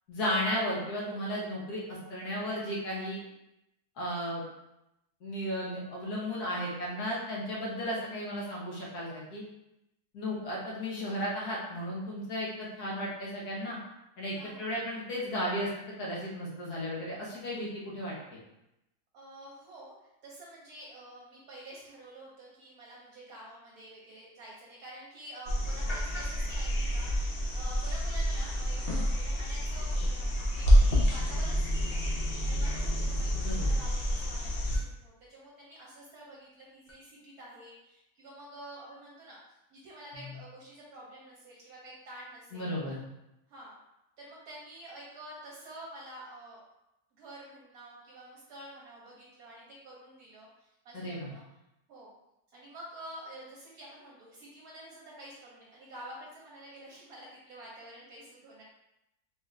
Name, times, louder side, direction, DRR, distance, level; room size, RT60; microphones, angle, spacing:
voice 1, 0.1-3.2 4.0-4.4 5.2-9.4 10.1-13.8 14.2-18.1 33.4-33.8 40.1-40.3 42.5-43.0 50.9-51.3, equal, 75° left, -5 dB, 1.6 m, -34 dB
voice 2, 14.3-14.7 19.1-42.7 43.5-43.8 44.2-46.6 47.1-51.4 51.9-52.1 52.5-58.6, right 1 dB, 70° right, -5 dB, 1.2 m, -49 dB
sound 1, 25.5-34.8 36.9-37.0, equal, 50° left, 0.7 m, -28 dB
4.1 x 2.4 x 3.2 m, 0.89 s
omnidirectional pair, 1.7 m